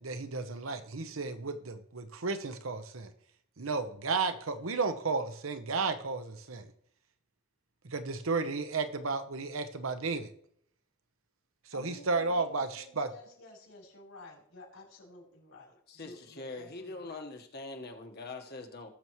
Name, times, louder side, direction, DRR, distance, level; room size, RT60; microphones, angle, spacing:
voice 1, 0.0-3.1 3.6-6.7 7.8-10.3 11.7-13.1, right 4 dB, 70° right, 10 dB, 0.9 m, -33 dB
voice 2, 11.7-17.1, left 2 dB, 75° left, -1 dB, 4.0 m, -52 dB
voice 3, 15.9-18.9, left 3 dB, 50° left, 4 dB, 1.4 m, -43 dB
20.0 x 7.0 x 3.1 m, 0.66 s
head